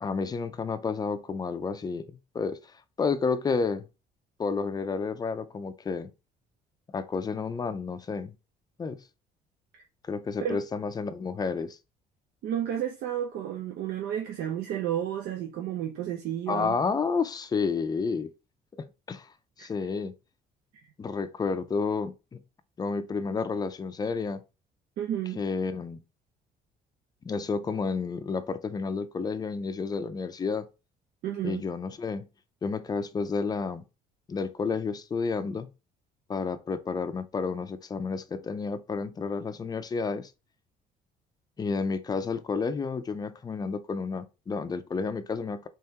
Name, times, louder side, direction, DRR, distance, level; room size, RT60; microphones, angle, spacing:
voice 1, 0.0-2.1 2.3-2.6 3.0-3.8 4.4-6.1 6.9-8.3 8.8-9.0 10.0-11.8 16.5-18.3 18.7-19.3 19.6-20.1 21.0-22.4 22.8-24.4 25.4-26.0 27.3-30.7 31.4-32.3 32.6-33.8 34.3-35.7 36.3-40.3 41.6-45.7, left 4 dB, 25° left, 0.4 m, -30 dB
voice 2, 12.4-16.8 19.6-19.7 25.0-25.4 31.2-31.6, right 10 dB, 70° right, 0.6 m, -31 dB
3.5 x 3.1 x 2.8 m
cardioid pair, 110°, 17 cm